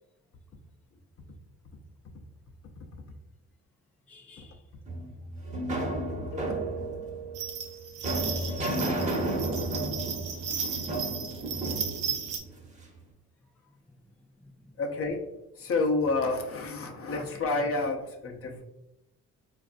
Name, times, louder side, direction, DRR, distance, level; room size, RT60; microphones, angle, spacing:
voice 1, 4.1-4.6 8.0-9.9 10.4-10.6 12.1-12.2 13.4-14.8 16.8-17.2 17.6-17.7 18.4-18.6, left 2 dB, 5° left, 2 dB, 0.3 m, -54 dB
sound 1, 4.9-13.0, right 1 dB, 25° right, 0.8 m, -33 dB
voice 2, 6.2-6.6 14.8-15.3 15.6-18.6, left 3 dB, 50° left, 3 dB, 0.6 m, -30 dB
Keyboard (musical), 6.3-8.3, right 7 dB, 75° left, 0.8 m, -40 dB
sound 2, 7.3-12.4, right 7 dB, 80° right, 0.6 m, -35 dB
4.0 x 2.5 x 2.4 m, 0.91 s
cardioid pair, 90°, 30 cm